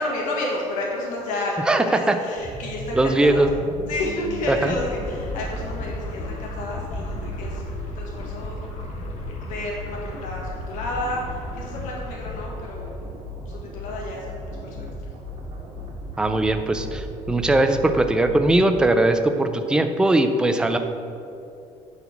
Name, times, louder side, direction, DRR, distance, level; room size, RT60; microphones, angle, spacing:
voice 1, 0.0-3.5 3.9-7.6 8.0-8.6 9.4-12.9 13.5-14.9, left 1 dB, 85° left, -2 dB, 1.6 m, -31 dB
voice 2, 1.7-2.2 3.0-3.5 4.5-4.7 16.2-20.8, right 2 dB, 5° right, 7 dB, 0.4 m, -20 dB
sound 1, 2.4-18.7, left 1 dB, 55° right, 1.6 m, -36 dB
sound 2, 4.6-13.2, left 2 dB, 65° left, 1.3 m, -36 dB
10.0 x 4.0 x 6.0 m, 2.7 s
cardioid pair, 160°, 13 cm